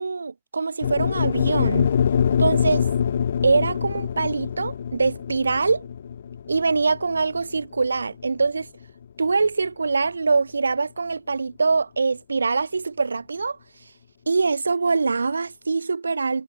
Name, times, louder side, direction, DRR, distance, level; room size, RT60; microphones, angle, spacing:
voice 1, 0.0-1.9 2.4-2.9 3.4-5.9 6.5-8.7 9.2-13.6 14.3-16.4, right 4 dB, 80° right, 0.3 m, -23 dB
sound 1, 0.8-9.0, left 8 dB, 70° left, 0.4 m, -25 dB
figure-of-eight pair, 90°, 0 cm